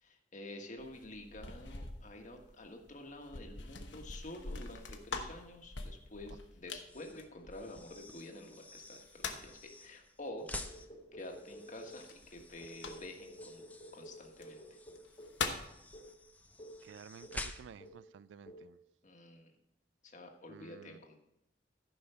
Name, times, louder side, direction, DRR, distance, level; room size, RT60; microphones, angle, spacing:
voice 1, 0.0-10.8 11.1-13.6 13.9-14.8 19.0-19.5 20.0-21.2, left 1 dB, 45° left, 1.4 m, -49 dB
sound 1, 0.8-8.2 8.8-9.6 12.0-13.3 14.3-14.4 15.0-15.8, left 4 dB, 90° left, 1.1 m, -44 dB
sound 2, 6.8-18.0, left 2 dB, 10° left, 0.6 m, -50 dB
sound 3, 10.6-12.1 12.6-15.4 15.9-16.2 16.6-16.9 17.2-17.5 17.8-18.1 18.5-18.7, equal, 25° left, 1.7 m, -52 dB
voice 2, 16.8-18.8 20.5-21.0, right 7 dB, 80° right, 0.3 m, -53 dB
13.5 x 5.5 x 5.6 m
head